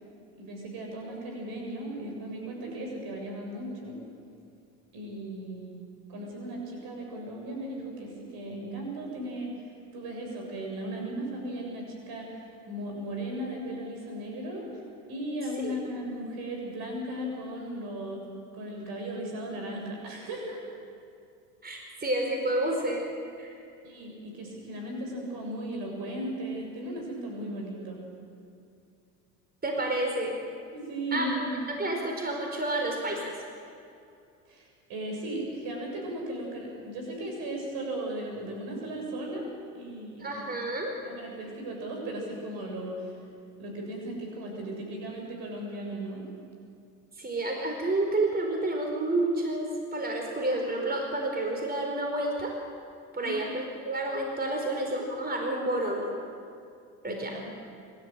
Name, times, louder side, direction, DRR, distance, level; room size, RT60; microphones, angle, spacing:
voice 1, 0.4-4.0 4.9-5.8 6.1-14.8 15.1-18.2 18.5-20.6 23.8-28.0 30.7-31.8 34.5-39.5 39.7-40.5 41.0-43.2 43.6-46.3 53.2-53.4 57.0-57.5, right 1 dB, 65° right, 0 dB, 7.0 m, -36 dB
voice 2, 21.6-23.0 23.4-23.5 29.6-30.3 31.1-33.4 40.2-40.9 47.2-52.5 53.1-56.1 57.0-57.4, right 2 dB, 25° right, 1 dB, 4.7 m, -30 dB
25.0 x 13.0 x 9.0 m, 2.5 s
hypercardioid pair, 75°, 39 cm